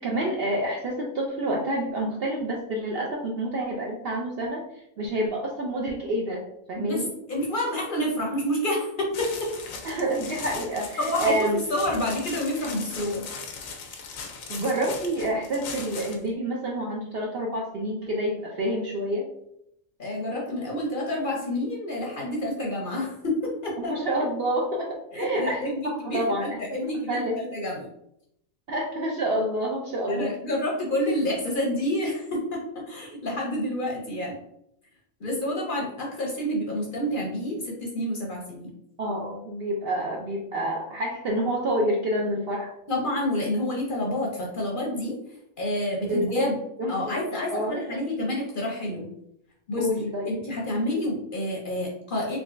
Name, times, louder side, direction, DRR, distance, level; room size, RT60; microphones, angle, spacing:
voice 1, 0.0-7.1 9.8-11.6 14.5-19.3 23.8-27.4 28.7-30.4 39.0-42.7 46.1-46.5 46.8-47.2 47.5-48.0 49.8-50.3, right 1 dB, 60° right, -2 dB, 0.6 m, -28 dB
voice 2, 7.3-9.5 11.0-13.3 20.0-23.9 25.1-25.8 26.1-27.9 30.1-34.3 35.2-38.7 42.9-45.2 45.6-46.5 46.9-49.1 49.7-52.4, left 1 dB, 50° left, -2 dB, 0.8 m, -28 dB
sound 1, 9.1-16.3, left 5 dB, 80° left, 1.1 m, -39 dB
3.6 x 3.1 x 2.5 m, 0.76 s
omnidirectional pair, 1.4 m